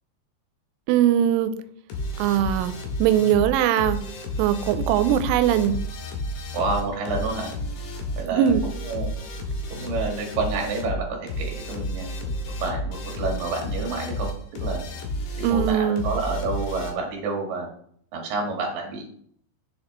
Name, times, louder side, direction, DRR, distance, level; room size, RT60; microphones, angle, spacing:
voice 1, 0.9-1.6 2.2-2.7 3.0-4.0 4.4-5.8 8.3-8.6 15.4-16.1, right 10 dB, 85° right, 11 dB, 3.0 m, -20 dB
sound 1, 1.9-16.9, equal, 70° left, 3.5 m, -31 dB
voice 2, 6.5-7.5 8.2-8.5 8.9-9.1 9.7-12.3 12.6-14.3 14.6-14.8 15.4-17.7 18.1-19.1, right 3 dB, 60° right, 0 dB, 2.8 m, -29 dB
7.2 x 6.4 x 3.1 m, 0.64 s
omnidirectional pair, 5.6 m